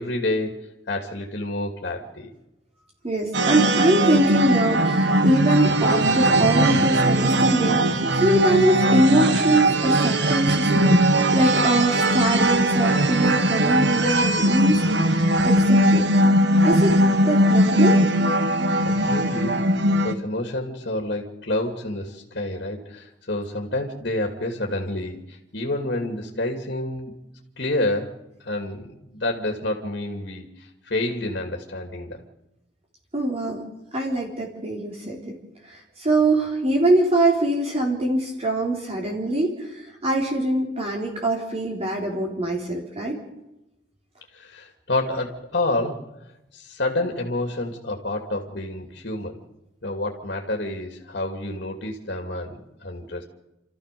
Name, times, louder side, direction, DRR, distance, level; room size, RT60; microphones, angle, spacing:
voice 1, 0.0-2.3 18.9-27.1 27.6-32.2 44.3-46.1 46.5-49.4 49.8-53.2, left 2 dB, 60° left, 3 dB, 2.7 m, -29 dB
voice 2, 3.0-16.1 16.6-16.9 17.3-18.0 33.1-33.6 33.9-35.4 35.7-43.2, right 1 dB, 35° right, -1 dB, 3.9 m, -23 dB
sound 1, 3.3-20.1, right 1 dB, 65° right, 1.5 m, -19 dB
29.5 x 14.0 x 6.9 m, 0.93 s
head